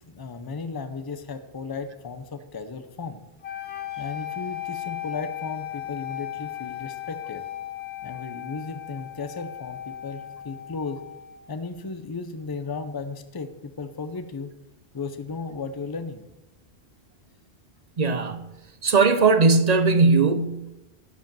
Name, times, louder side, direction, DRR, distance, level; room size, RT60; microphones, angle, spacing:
voice 1, 0.1-3.2 4.0-7.5 8.0-11.0 11.5-14.5 14.9-16.2, left 4 dB, 25° left, 0.6 m, -35 dB
sound 1, 3.4-11.5, left 13 dB, 70° left, 1.2 m, -36 dB
voice 2, 18.0-18.4 18.8-20.9, right 4 dB, 45° right, 0.7 m, -19 dB
11.0 x 5.1 x 7.5 m
omnidirectional pair, 1.1 m